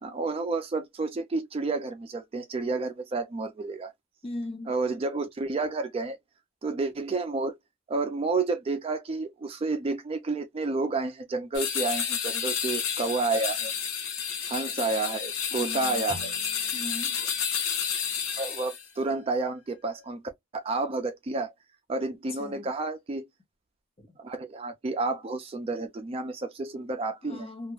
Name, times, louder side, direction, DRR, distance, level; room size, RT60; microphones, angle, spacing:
voice 1, 0.0-3.9 4.7-6.2 6.6-7.5 7.9-13.7 14.5-16.3 18.4-20.2 20.5-21.5 21.9-23.3 24.2-27.5, right 3 dB, 30° right, 0.3 m, -30 dB
voice 2, 4.2-4.7 15.5-16.1 16.7-17.2 22.4-22.7 24.0-24.1 27.2-27.7, left 1 dB, 30° left, 0.6 m, -38 dB
sound 1, 11.5-18.9, left 7 dB, 80° left, 0.7 m, -31 dB
sound 2, 16.0-18.5, right 2 dB, 50° left, 1.3 m, -49 dB
2.2 x 2.1 x 2.9 m
head